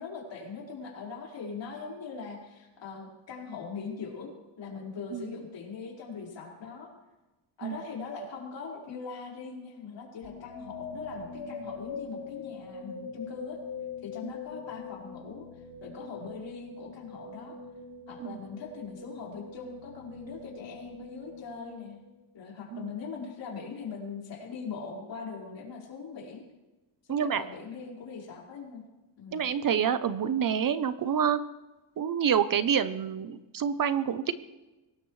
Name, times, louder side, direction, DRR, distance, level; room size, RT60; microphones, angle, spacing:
voice 1, 0.0-6.9 7.6-13.6 14.0-17.6 18.1-22.0 22.3-26.4 27.1-28.8 29.2-29.4, left 5 dB, 60° left, -2 dB, 4.8 m, -41 dB
sound 1, 10.2-22.3, left 5 dB, 85° left, 6.2 m, -43 dB
voice 2, 27.1-27.4 29.3-31.4 32.0-34.3, right 8 dB, 45° right, 13 dB, 0.7 m, -27 dB
23.0 x 19.0 x 3.2 m, 1.1 s
cardioid pair, 160°, 49 cm